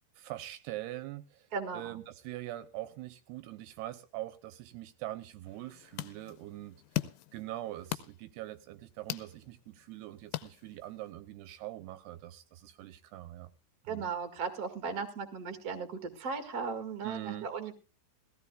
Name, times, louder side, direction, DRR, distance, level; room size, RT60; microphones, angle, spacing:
voice 1, 0.2-1.5 1.7-6.8 7.3-13.5 13.9-14.0 17.0-17.5, right 15 dB, 80° right, 11 dB, 2.6 m, -43 dB
voice 2, 1.5-2.0 13.9-17.7, right 5 dB, 40° right, 6 dB, 1.4 m, -37 dB
sound 1, 5.5-11.1, left 17 dB, 85° left, 3.1 m, -41 dB
20.0 x 15.5 x 2.3 m, 0.33 s
omnidirectional pair, 5.0 m